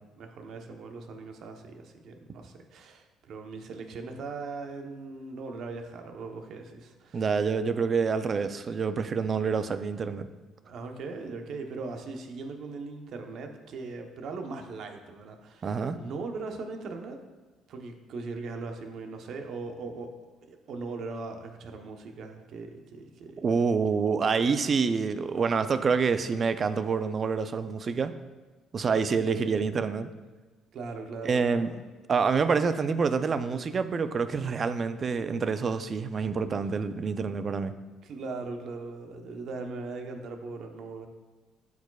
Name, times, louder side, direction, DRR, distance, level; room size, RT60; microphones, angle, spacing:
voice 1, 0.2-7.3 8.1-8.2 10.6-15.7 16.0-17.2 17.7-23.4 29.1-29.6 30.7-31.8 38.0-41.1, right 3 dB, 65° right, 4 dB, 0.9 m, -39 dB
voice 2, 7.1-10.3 15.6-16.0 23.4-28.1 28.7-30.1 31.2-31.7 32.1-37.7, right 5 dB, 40° right, 11 dB, 0.4 m, -27 dB
12.0 x 4.9 x 2.3 m, 1.3 s
cardioid pair, 95°, 0 cm